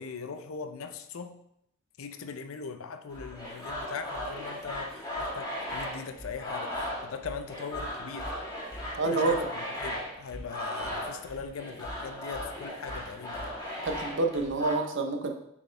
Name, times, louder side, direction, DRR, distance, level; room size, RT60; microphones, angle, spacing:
voice 1, 0.0-1.4 2.0-8.3 9.0-13.6, left 5 dB, 75° left, 8 dB, 0.5 m, -40 dB
sound 1, 3.1-14.7, left 1 dB, 15° left, 1.7 m, -37 dB
voice 2, 9.0-9.5 13.8-15.3, right 3 dB, 60° right, 5 dB, 0.8 m, -27 dB
7.0 x 4.5 x 3.3 m, 0.75 s
head